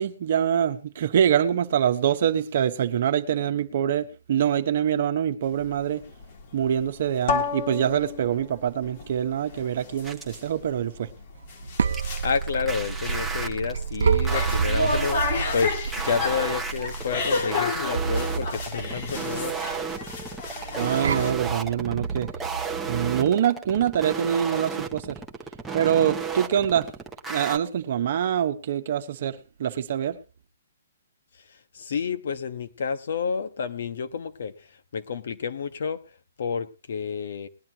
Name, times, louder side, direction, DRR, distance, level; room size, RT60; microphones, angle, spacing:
voice 1, 0.0-6.0 6.5-11.1 20.8-22.3 22.9-25.2 25.7-26.9 27.3-30.2, right 9 dB, 45° right, 1.1 m, -25 dB
sound 1, 5.5-21.3, left 4 dB, 40° left, 2.0 m, -32 dB
sound 2, 10.0-10.5 11.9-27.6, right 5 dB, 5° right, 0.9 m, -33 dB
sound 3, 11.4-23.3, right 6 dB, 75° right, 0.8 m, -30 dB
voice 2, 12.2-19.5 31.5-36.0 36.4-37.5, left 6 dB, 60° left, 1.2 m, -30 dB
20.0 x 11.0 x 2.9 m
hypercardioid pair, 165°, 0 cm